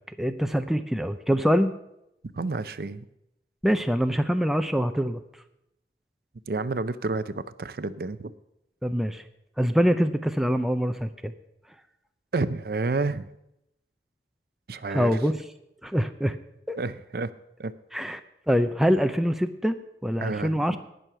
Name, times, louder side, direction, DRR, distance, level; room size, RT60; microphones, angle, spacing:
voice 1, 0.2-1.7 3.6-5.2 8.8-9.2 9.6-11.3 14.9-15.3 15.8-16.4 16.7-16.8 17.9-18.2 18.5-19.8 20.0-20.8, equal, ahead, 8 dB, 0.4 m, -24 dB
voice 2, 2.3-3.1 6.5-8.3 12.3-13.2 14.7-15.1 16.8-17.3 17.6-17.7 20.2-20.8, right 3 dB, 55° right, 14 dB, 0.5 m, -30 dB
18.0 x 6.4 x 5.6 m, 0.83 s
head